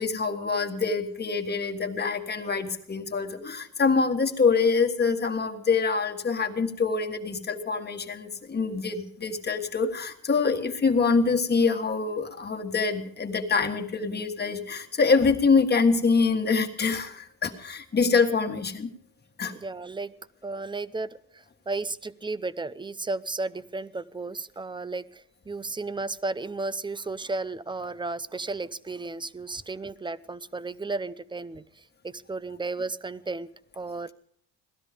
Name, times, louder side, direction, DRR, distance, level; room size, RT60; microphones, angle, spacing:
voice 1, 0.0-18.9 19.4-19.5, left 4 dB, 25° left, 5 dB, 1.7 m, -25 dB
voice 2, 19.5-20.1 20.4-33.5 33.7-34.1, right 3 dB, 15° right, 16 dB, 0.5 m, -34 dB
17.5 x 13.0 x 5.1 m, 0.63 s
cardioid pair, 115°, 36 cm